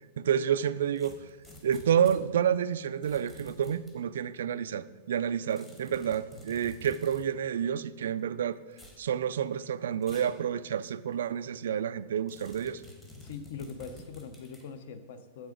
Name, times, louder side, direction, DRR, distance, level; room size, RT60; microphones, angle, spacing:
voice 1, 0.2-1.1 1.6-8.6 9.0-12.8, right 8 dB, 85° right, 14 dB, 0.3 m, -29 dB
sound 1, 1.0-2.2 3.0-4.0 5.5-7.3 8.7-9.0 10.0-10.4 10.8-10.9 12.3-14.7, equal, 10° left, 0.9 m, -50 dB
voice 2, 13.2-15.5, left 6 dB, 55° left, 11 dB, 0.6 m, -42 dB
7.5 x 6.1 x 5.1 m, 1.3 s
supercardioid pair, 180°, 0 cm